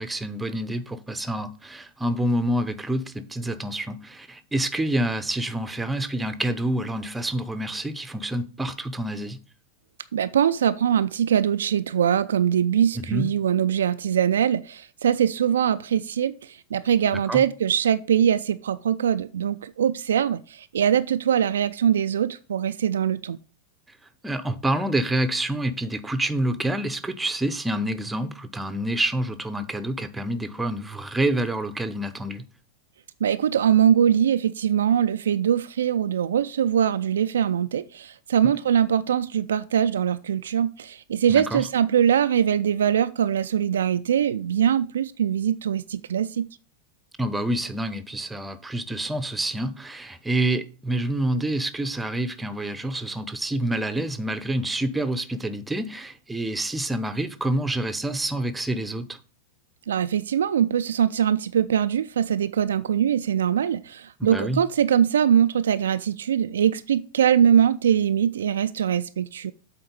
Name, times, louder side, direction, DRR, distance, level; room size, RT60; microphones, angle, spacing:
voice 1, 0.0-9.4 12.9-13.3 17.3-17.4 24.2-32.4 41.3-41.6 47.2-59.2 64.2-64.6, right 1 dB, 5° right, 0.7 m, -27 dB
voice 2, 10.1-23.4 33.2-46.5 59.9-69.5, right 9 dB, 65° right, 0.3 m, -22 dB
7.8 x 4.1 x 5.3 m
figure-of-eight pair, 90°, 0 cm